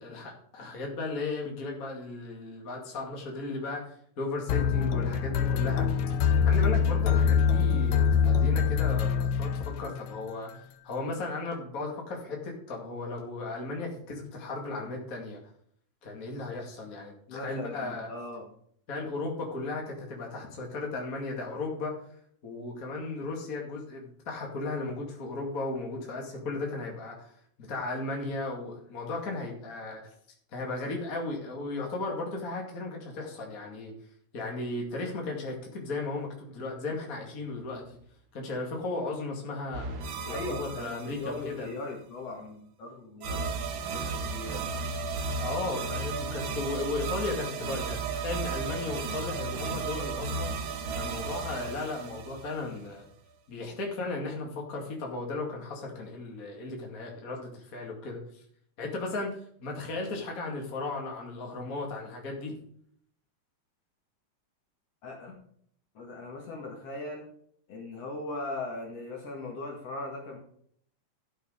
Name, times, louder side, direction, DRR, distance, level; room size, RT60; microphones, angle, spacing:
voice 1, 0.0-5.9 6.4-15.4 16.0-18.1 18.9-21.9 22.4-27.3 27.7-30.0 30.5-33.9 34.3-38.0 38.3-40.0 40.3-41.7 44.0-44.1 45.4-50.5 50.9-53.1 53.5-58.4 58.8-59.3 59.6-62.6, left 3 dB, 30° left, -1 dB, 2.3 m, -35 dB
sound 1, 4.5-10.2, left 7 dB, 70° left, 2.0 m, -24 dB
voice 2, 17.3-18.5 40.3-44.7 65.0-65.4 65.9-67.3 67.7-70.4, left 2 dB, 55° left, 0 dB, 2.7 m, -39 dB
sound 2, 39.7-41.6 43.2-53.0, right 4 dB, 85° right, 1.0 m, -34 dB
12.0 x 6.6 x 5.0 m, 0.64 s
omnidirectional pair, 3.7 m